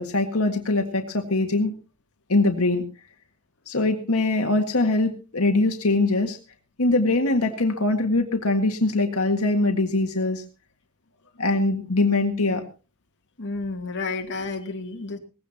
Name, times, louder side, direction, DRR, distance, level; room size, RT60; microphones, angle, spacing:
voice 1, 0.0-1.7 2.3-2.8 3.7-6.4 6.8-10.4 11.4-12.6, left 2 dB, 85° left, 4 dB, 1.8 m, -22 dB
voice 2, 13.4-15.2, left 3 dB, 55° left, 3 dB, 2.6 m, -31 dB
20.0 x 16.5 x 2.9 m, 0.34 s
head